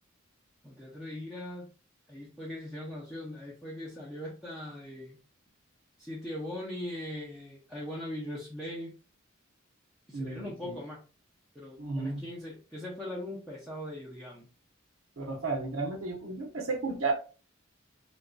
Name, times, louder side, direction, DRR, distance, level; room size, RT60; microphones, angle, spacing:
voice 1, 0.6-1.7 2.1-5.2 6.0-9.0 10.1-11.0 11.5-14.5, left 1 dB, ahead, 0.6 m, -40 dB
voice 2, 10.1-10.8 11.8-12.2 15.2-17.1, right 3 dB, 90° right, 0.9 m, -33 dB
3.9 x 2.6 x 2.3 m
head